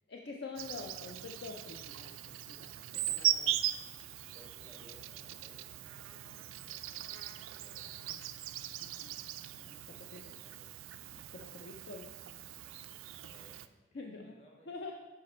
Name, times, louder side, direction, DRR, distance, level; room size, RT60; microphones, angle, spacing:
voice 1, 0.1-2.7 2.9-3.5 8.8-9.2 9.6-9.8 10.1-10.3 11.3-12.1 13.9-14.3 14.7-14.9, left 3 dB, 55° left, 1 dB, 0.5 m, -46 dB
Insect, 0.6-13.7, right 12 dB, 85° right, 0.3 m, -39 dB
voice 2, 2.7-3.5 4.3-5.7 6.0-8.3 9.9-10.8 11.5-11.7 13.2-14.9, left 1 dB, 30° left, -1 dB, 1.3 m, -62 dB
6.4 x 5.1 x 4.3 m, 1.2 s
head